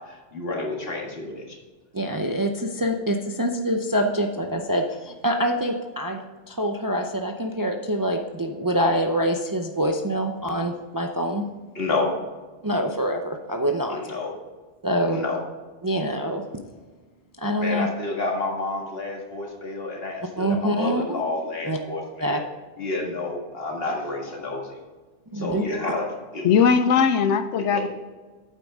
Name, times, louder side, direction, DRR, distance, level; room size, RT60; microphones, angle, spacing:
voice 1, 0.1-1.6 11.8-12.1 13.9-14.3 15.1-15.4 17.6-22.4 22.8-24.8 25.3-26.1 26.3-26.5 27.7-27.8, left 2 dB, 55° left, -1 dB, 2.0 m, -29 dB
voice 2, 1.9-6.2 6.5-11.5 12.6-14.0 14.8-15.3 15.8-16.4 17.4-17.9 20.4-21.2 21.6-21.8 22.2-22.4 25.3-25.6, equal, 25° right, 3 dB, 0.5 m, -25 dB
voice 3, 26.4-27.9, left 6 dB, 85° left, 10 dB, 0.9 m, -19 dB
9.1 x 8.3 x 3.6 m, 1.3 s
omnidirectional pair, 1.2 m